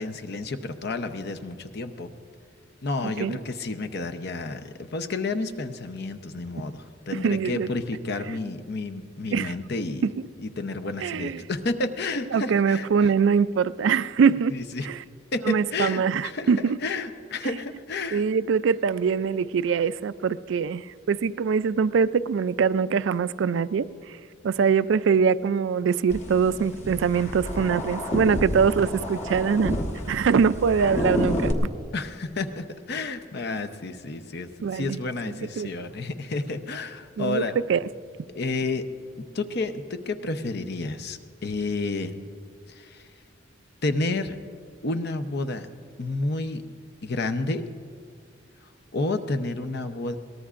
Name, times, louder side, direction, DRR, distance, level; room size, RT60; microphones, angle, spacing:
voice 1, 0.0-2.1 2.8-10.0 10.4-13.1 14.5-14.9 15.3-18.2 31.9-37.6 38.3-38.8 39.2-42.1 42.7-43.0 43.8-44.4 44.8-45.7 46.0-46.6 47.0-47.6 48.9-50.2, left 2 dB, 55° left, 8 dB, 0.8 m, -30 dB
voice 2, 3.0-3.4 7.1-7.7 8.3-8.4 9.3-9.5 10.0-10.3 11.0-11.4 12.3-14.5 14.8-15.0 15.4-16.8 18.1-23.9 24.4-29.8 30.1-31.5 34.6-35.0 35.3-35.7 37.2-37.4 37.7-37.9, right 6 dB, 65° right, 16 dB, 0.3 m, -23 dB
sound 1, 26.1-31.5, left 1 dB, 35° left, 1.2 m, -30 dB
22.0 x 18.5 x 2.5 m, 2.2 s
head